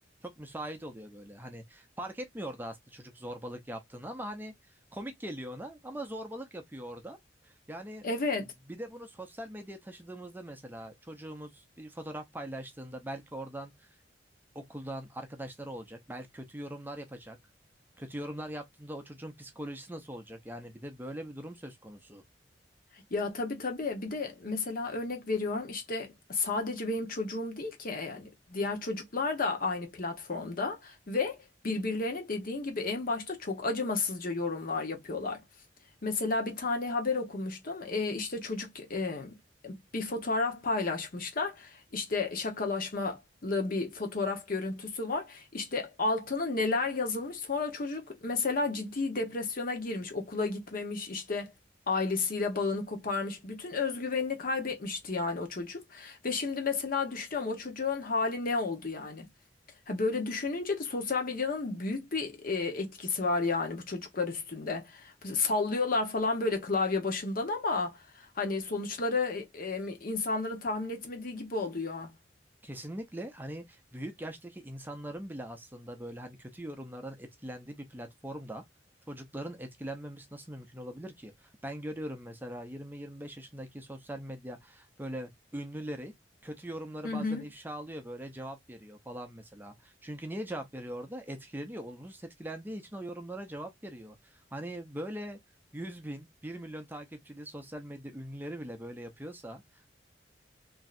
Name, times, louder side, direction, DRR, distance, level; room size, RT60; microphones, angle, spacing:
voice 1, 0.2-4.5 4.9-7.2 7.4-8.1 8.7-13.9 14.5-17.4 18.0-22.2 72.6-78.6 79.1-86.1 86.4-95.4 95.7-99.6, right 1 dB, 10° right, 0.5 m, -41 dB
voice 2, 8.0-8.4 23.1-35.4 36.0-39.3 39.6-51.5 51.9-59.3 59.9-72.1 87.0-87.5, left 3 dB, 50° left, 0.9 m, -32 dB
3.0 x 2.7 x 2.4 m
head